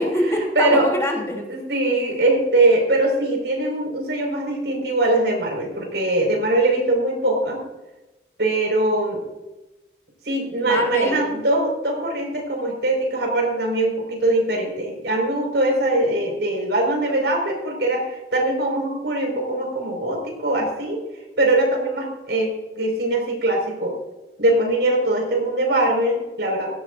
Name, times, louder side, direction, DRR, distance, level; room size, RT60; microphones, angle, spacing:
voice 1, 0.0-1.4 10.6-11.2, left 1 dB, 15° left, -1 dB, 3.0 m, -24 dB
voice 2, 0.5-0.9 1.5-7.6 8.4-9.2 10.2-21.0 21.4-23.9 24.4-26.7, right 2 dB, 75° right, 1 dB, 5.0 m, -22 dB
17.0 x 17.0 x 2.6 m, 1.1 s
head